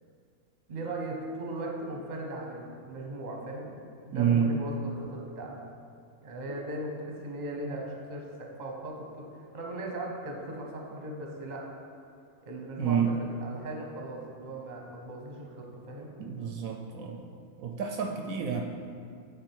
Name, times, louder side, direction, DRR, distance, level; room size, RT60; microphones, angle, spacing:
voice 1, 0.7-3.8 4.1-5.5 6.2-11.6 12.4-13.0 13.4-16.1, right 1 dB, 35° right, 0 dB, 0.9 m, -38 dB
voice 2, 4.1-4.5 12.8-13.1 16.2-17.3 17.6-18.6, right 8 dB, 70° right, 2 dB, 1.0 m, -28 dB
8.6 x 4.1 x 4.6 m, 2.3 s
omnidirectional pair, 1.5 m